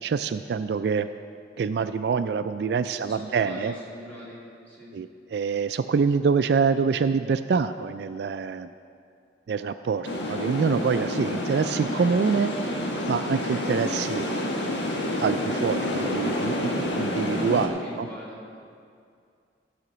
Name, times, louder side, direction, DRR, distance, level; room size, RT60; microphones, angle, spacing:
voice 1, 0.0-1.1 1.6-3.7 4.9-8.7 9.5-12.5 13.1-14.3 15.2-16.7 17.0-18.1, right 5 dB, 70° right, 11 dB, 0.3 m, -25 dB
voice 2, 3.0-4.4 4.7-4.9 15.8-16.2 17.5-18.6, equal, 10° left, -8 dB, 2.6 m, -42 dB
sound 1, 10.0-17.7, left 1 dB, 90° left, 1.4 m, -28 dB
14.0 x 5.0 x 6.7 m, 2.3 s
head